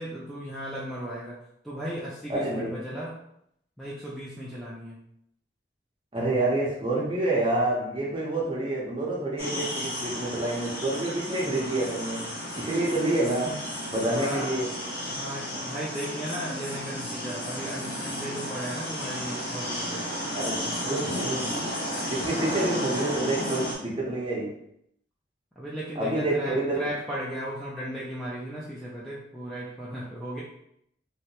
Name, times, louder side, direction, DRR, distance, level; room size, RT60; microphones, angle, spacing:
voice 1, 0.0-1.3 1.6-3.1 3.8-5.0 14.0-14.5 15.1-20.0 20.6-21.0 25.6-30.4, equal, ahead, -8 dB, 0.5 m, -36 dB
voice 2, 2.3-2.7 6.1-12.2 12.5-13.5 13.9-14.6 20.3-20.5 20.9-21.6 22.1-24.4 25.9-26.9, right 2 dB, 25° right, -5 dB, 0.9 m, -28 dB
sound 1, 9.4-23.7, equal, 50° left, 0.9 m, -33 dB
3.2 x 2.8 x 2.9 m, 0.74 s
head